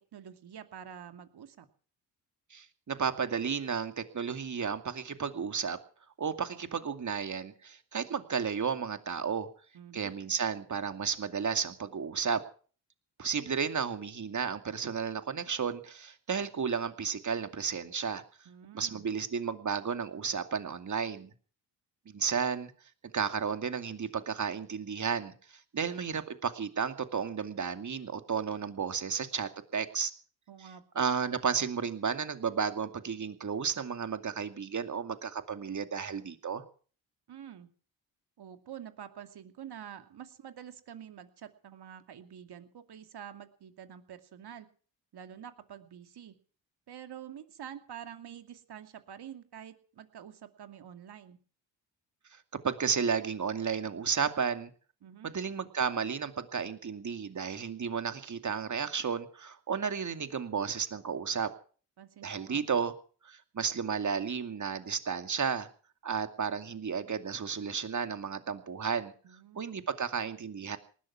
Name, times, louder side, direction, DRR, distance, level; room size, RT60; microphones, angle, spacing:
voice 1, 0.1-1.7 9.7-10.1 18.5-19.0 30.5-31.1 37.3-37.7 38.4-44.7 45.1-46.4 46.9-51.4 55.0-55.3 62.0-62.8 69.2-69.8, right 9 dB, 60° right, 7 dB, 2.5 m, -47 dB
voice 2, 2.5-5.8 6.2-9.5 9.9-12.4 13.2-18.2 18.7-21.3 22.1-22.7 23.1-25.3 25.7-30.1 31.0-36.6 52.3-52.4 52.6-54.7 55.2-61.5 62.2-62.9 63.3-65.7 66.0-69.1 69.6-70.8, right 6 dB, 40° right, 8 dB, 2.4 m, -33 dB
19.0 x 12.5 x 6.0 m, 0.43 s
supercardioid pair, 55°, 44 cm